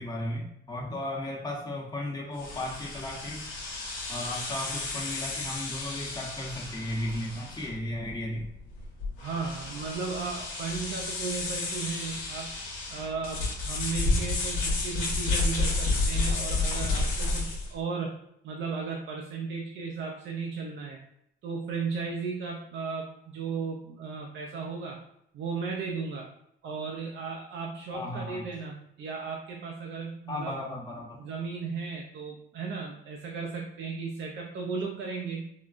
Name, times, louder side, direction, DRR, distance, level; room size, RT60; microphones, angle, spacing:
voice 1, 0.0-3.5 4.1-8.5 27.9-28.4 30.3-31.2, left 1 dB, 20° left, -2 dB, 1.0 m, -35 dB
sound 1, 2.4-17.7, left 3 dB, 90° left, 0.9 m, -31 dB
voice 2, 9.2-12.5 12.9-18.1 18.4-21.0 21.4-25.0 25.3-26.3 26.6-30.6 31.2-35.5, right 5 dB, 65° right, 1 dB, 0.5 m, -35 dB
3.7 x 2.1 x 2.4 m, 0.77 s
cardioid pair, 90°, 20 cm